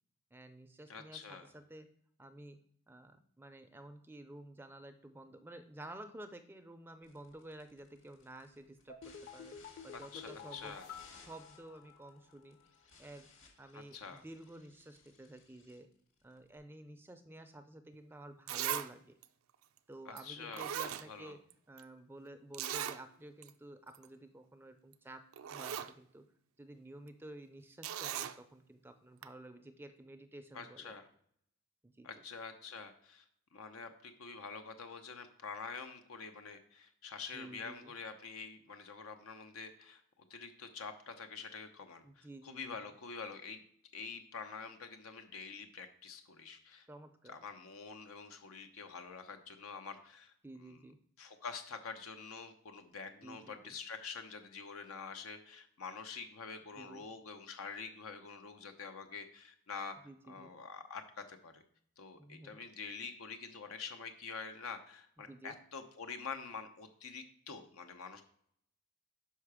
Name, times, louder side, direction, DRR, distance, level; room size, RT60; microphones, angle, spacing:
voice 1, 0.3-1.9 2.2-9.6 9.8-10.8 11.1-12.6 13.0-13.3 13.6-15.9 16.2-19.1 19.9-21.4 21.7-26.3 26.6-31.0 31.8-32.1 37.3-37.9 42.0-42.8 46.9-47.4 50.4-51.0 53.2-53.7 56.8-57.0 60.0-60.5 62.2-62.6 65.3-65.5, right 1 dB, 10° right, 9 dB, 0.4 m, -52 dB
voice 2, 0.9-1.5 9.9-10.9 13.7-14.2 20.1-20.6 21.1-21.4 30.5-31.1 32.0-33.2 33.5-40.0 40.3-43.6 43.9-46.9 47.3-50.3 50.6-50.8 51.2-60.0 60.3-61.6 62.0-68.2, left 5 dB, 85° left, 7 dB, 0.7 m, -46 dB
sound 1, 7.0-16.6, left 4 dB, 65° left, 1.9 m, -62 dB
sound 2, 8.9-12.3 12.6-12.7, left 6 dB, 45° left, 0.7 m, -51 dB
Zipper (clothing), 17.9-18.0 18.5-18.9 19.2-19.3 20.2-20.3 20.5-21.5 21.8-21.9 22.5-23.0 23.4-23.5 23.9-24.1 24.9-25.0 25.3-25.9 27.8-28.4 29.2-29.3, right 10 dB, 80° right, 0.4 m, -38 dB
5.7 x 5.6 x 4.8 m, 0.67 s
head